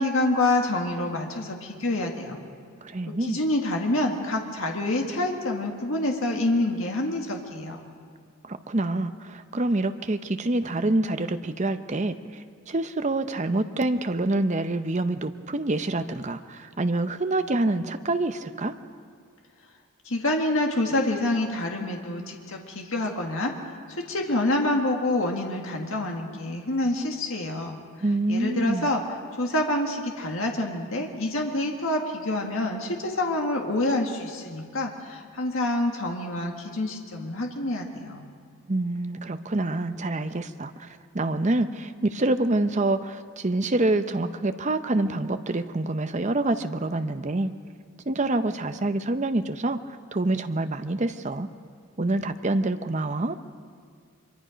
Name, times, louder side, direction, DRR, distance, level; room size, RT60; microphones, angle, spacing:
voice 1, 0.0-2.4 3.1-7.8 20.1-23.8 24.1-27.8 28.3-29.0 29.4-38.3, left 1 dB, 65° left, 2 dB, 1.9 m, -27 dB
voice 2, 2.8-3.4 8.4-18.7 28.0-28.9 38.7-47.5 48.1-49.8 50.1-51.5 52.0-53.4, right 2 dB, 30° right, 9 dB, 0.7 m, -26 dB
24.0 x 23.5 x 5.2 m, 2.2 s
head